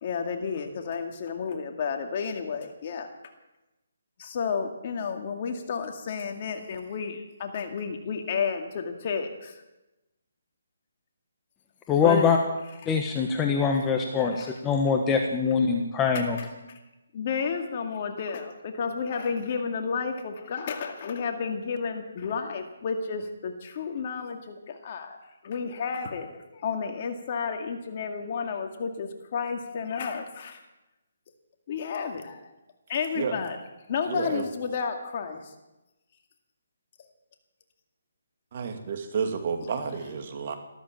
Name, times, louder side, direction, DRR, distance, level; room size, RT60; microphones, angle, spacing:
voice 1, 0.0-3.1 4.2-9.6 12.0-12.3 12.8-13.0 14.3-14.5 16.1-16.5 17.1-25.2 25.4-30.6 31.7-32.5 32.9-35.5, left 6 dB, 40° left, 4 dB, 2.2 m, -32 dB
voice 2, 11.9-12.4 12.9-16.4, left 6 dB, 15° left, 3 dB, 1.3 m, -23 dB
voice 3, 34.1-34.4 38.5-40.6, right 6 dB, 45° right, 6 dB, 2.3 m, -31 dB
14.5 x 13.0 x 7.5 m, 1.0 s
hypercardioid pair, 155°, 0 cm